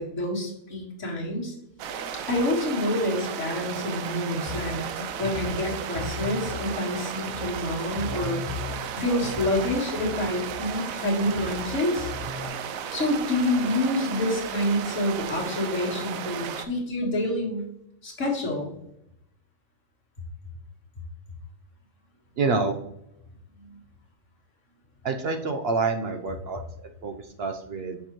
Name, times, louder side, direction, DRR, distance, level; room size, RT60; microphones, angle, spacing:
voice 1, 0.0-1.6 2.3-4.8 5.2-8.4 9.0-12.1 12.9-17.7 18.0-18.7 23.6-23.8, left 1 dB, 65° left, -2 dB, 2.0 m, -27 dB
sound 1, 1.8-16.7, right 7 dB, 85° right, 1.0 m, -34 dB
sound 2, 4.5-12.5, left 3 dB, 45° left, 1.0 m, -37 dB
voice 2, 22.4-22.8 25.0-28.0, right 4 dB, 60° right, 5 dB, 0.7 m, -28 dB
6.5 x 5.9 x 3.0 m, 0.79 s
omnidirectional pair, 1.4 m